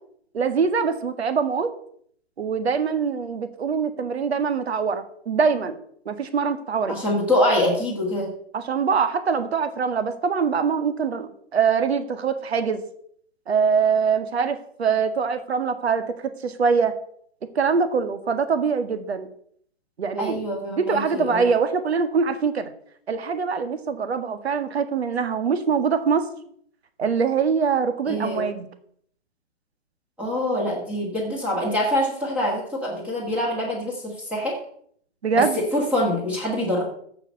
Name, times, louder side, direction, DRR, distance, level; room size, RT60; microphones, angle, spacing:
voice 1, 0.3-1.7 2.4-5.8 6.1-7.0 8.5-12.8 13.5-17.0 17.6-19.3 20.0-20.4 20.7-22.7 23.1-26.3 27.0-28.7 35.2-35.6, right 5 dB, 65° right, 10 dB, 1.9 m, -23 dB
voice 2, 6.9-8.3 20.2-21.5 28.1-28.5 30.2-34.6 35.3-36.8, left 1 dB, 5° right, -2 dB, 1.6 m, -25 dB
14.0 x 5.1 x 8.2 m, 0.63 s
hypercardioid pair, 170°, 35 cm